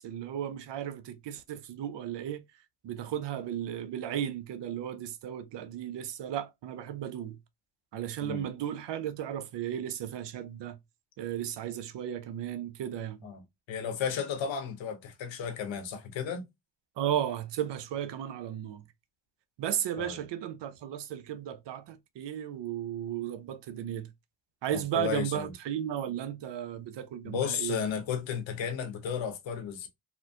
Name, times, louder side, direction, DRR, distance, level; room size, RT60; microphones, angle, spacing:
voice 1, 0.0-2.4 2.8-7.4 7.9-10.8 11.2-13.3 17.0-18.8 19.6-24.1 24.6-27.8, right 10 dB, 70° right, 0.6 m, -35 dB
voice 2, 13.7-16.4 20.0-20.2 24.7-25.5 27.2-29.9, left 7 dB, 85° left, 0.8 m, -33 dB
2.8 x 2.4 x 2.2 m
supercardioid pair, 45°, 44 cm